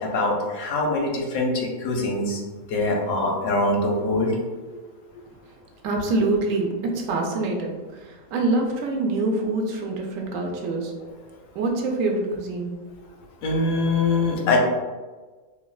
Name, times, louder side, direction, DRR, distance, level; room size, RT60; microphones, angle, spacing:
voice 1, 0.0-2.4 2.7-4.3 13.4-14.6, left 2 dB, 80° left, 0 dB, 1.0 m, -23 dB
voice 2, 5.8-10.9 11.5-12.7, right 2 dB, 80° right, 1 dB, 1.0 m, -25 dB
3.4 x 2.1 x 2.3 m, 1.3 s
omnidirectional pair, 1.4 m